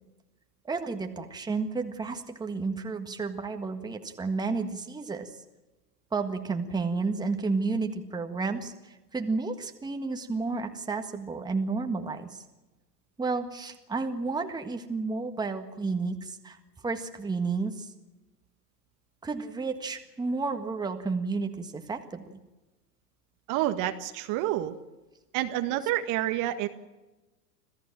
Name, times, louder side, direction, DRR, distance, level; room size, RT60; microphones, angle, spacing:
voice 1, 0.7-5.3 6.1-12.4 13.2-16.6 16.8-17.9 19.2-22.4 25.8-25.9, right 4 dB, 10° right, 6 dB, 1.6 m, -31 dB
voice 2, 23.5-24.7 25.3-26.7, right 13 dB, 40° right, 8 dB, 1.6 m, -28 dB
26.5 x 15.5 x 7.6 m, 1.1 s
hypercardioid pair, 115°, 50 cm